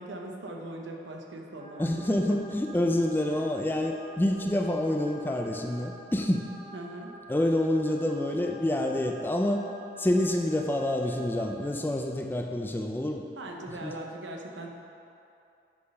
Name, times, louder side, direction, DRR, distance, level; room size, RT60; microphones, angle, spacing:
voice 1, 0.0-2.5 6.7-7.1 13.4-14.7, right 1 dB, 80° right, 1 dB, 0.9 m, -40 dB
sound 1, 1.6-11.6, right 1 dB, 25° right, 0.7 m, -48 dB
voice 2, 1.8-6.5 7.3-9.6 10.0-13.2 13.8-14.0, left 1 dB, 10° left, 3 dB, 0.3 m, -27 dB
8.4 x 4.1 x 5.4 m, 2.7 s
head